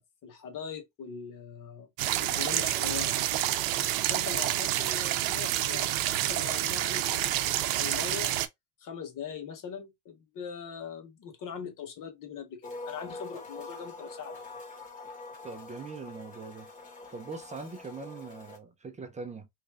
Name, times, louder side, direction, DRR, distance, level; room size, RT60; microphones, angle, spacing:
voice 1, 0.0-1.9 2.2-3.3 4.1-8.4 8.8-14.4, left 7 dB, 40° left, 1.3 m, -41 dB
sound 1, 2.0-8.5, right 13 dB, 75° right, 0.7 m, -28 dB
sound 2, 12.6-18.6, left 3 dB, 15° left, 1.1 m, -44 dB
voice 2, 15.4-16.7 17.1-19.5, right 4 dB, 15° right, 0.4 m, -41 dB
3.3 x 2.6 x 3.4 m
cardioid pair, 140°, 48 cm